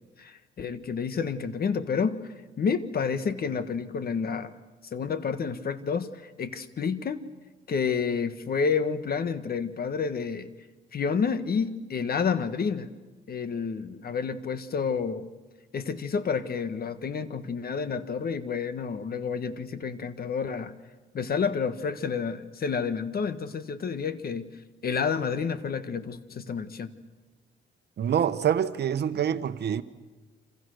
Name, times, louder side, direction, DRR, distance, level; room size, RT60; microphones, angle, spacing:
voice 1, 0.2-2.3 2.6-4.5 4.9-7.2 7.7-10.5 10.9-12.9 13.3-15.3 15.7-20.7 21.1-24.5 24.8-26.9, left 6 dB, 50° left, 11 dB, 1.6 m, -29 dB
voice 2, 28.0-29.8, right 9 dB, 55° right, 12 dB, 1.1 m, -26 dB
27.5 x 27.0 x 6.5 m, 1.2 s
cardioid pair, 90°, 20 cm